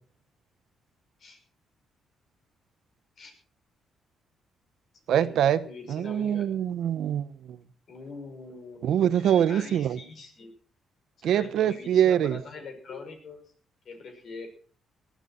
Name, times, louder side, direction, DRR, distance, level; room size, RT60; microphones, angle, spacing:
voice 1, 5.1-5.6 5.9-7.6 8.8-10.0 11.2-12.4, right 10 dB, 75° right, 1.1 m, -24 dB
voice 2, 5.6-6.5 7.9-10.5 11.2-13.4 13.8-14.5, left 4 dB, 60° left, 6.2 m, -43 dB
19.5 x 13.5 x 4.5 m
cardioid pair, 90°, 0 cm